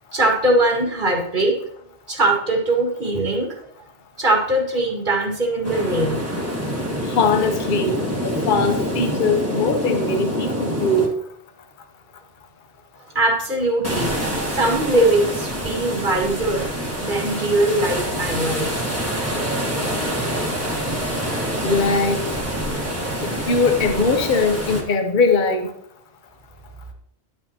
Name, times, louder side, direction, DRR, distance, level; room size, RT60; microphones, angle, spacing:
voice 1, 0.1-1.6 2.1-3.5 4.2-6.6 13.1-14.1 14.4-16.7 17.0-18.7, right 2 dB, 50° right, 1 dB, 2.0 m, -21 dB
sound 1, 5.6-11.1 13.8-24.8, equal, 15° right, 1.6 m, -26 dB
voice 2, 7.1-11.1 21.6-22.2 23.5-25.7, left 3 dB, 50° left, 5 dB, 1.0 m, -20 dB
11.0 x 8.6 x 2.9 m, 0.71 s
omnidirectional pair, 1.1 m